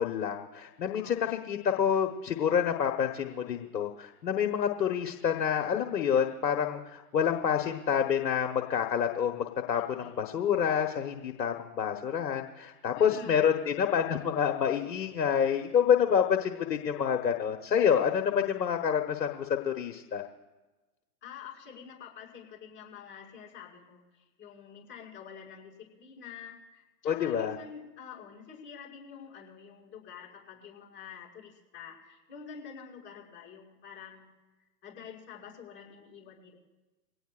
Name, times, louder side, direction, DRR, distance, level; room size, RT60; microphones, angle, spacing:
voice 1, 0.0-20.2 27.0-27.5, left 8 dB, 75° left, 4 dB, 1.3 m, -28 dB
voice 2, 9.7-10.2 12.9-13.5 21.2-34.3 34.8-36.6, left 7 dB, 25° left, -4 dB, 6.2 m, -48 dB
23.5 x 17.5 x 2.5 m, 1.2 s
hypercardioid pair, 120°, 49 cm